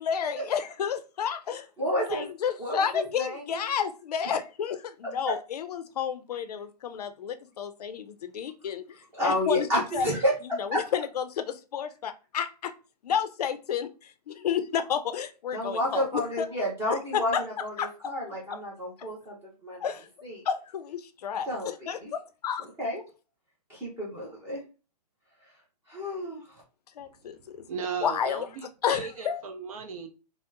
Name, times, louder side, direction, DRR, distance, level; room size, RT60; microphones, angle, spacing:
voice 1, 0.0-1.7 2.0-8.8 9.2-9.7 9.9-10.1 10.6-12.7 13.0-16.5 16.9-17.4 17.8-17.9 18.5-18.6 19.8-20.1 20.4-22.7 27.0-27.6 28.0-28.5 28.8-29.4, left 8 dB, 65° left, 0.5 m, -31 dB
voice 2, 1.8-2.3 2.6-3.6 9.1-10.3 15.5-19.3 19.6-19.8 20.2-20.4 21.5-22.1 22.8-23.0 23.7-24.6 25.9-26.4, equal, 10° right, 0.7 m, -30 dB
voice 3, 27.7-30.1, right 6 dB, 55° right, 0.5 m, -36 dB
3.6 x 2.0 x 2.5 m
hypercardioid pair, 150°, 21 cm